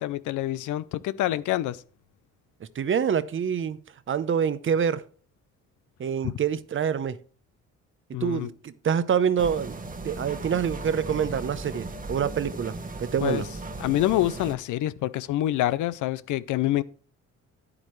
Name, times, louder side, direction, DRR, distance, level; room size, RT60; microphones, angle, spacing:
voice 1, 0.0-1.8 6.2-6.3 8.1-8.5 13.2-13.4 13.8-16.8, left 14 dB, 80° left, 0.6 m, -26 dB
voice 2, 2.8-3.8 4.1-5.0 6.0-7.2 8.1-9.8 10.0-13.5, right 7 dB, 40° right, 0.7 m, -26 dB
sound 1, 9.4-14.5, right 3 dB, 25° right, 1.1 m, -37 dB
9.9 x 8.7 x 3.2 m
cardioid pair, 90°, 30 cm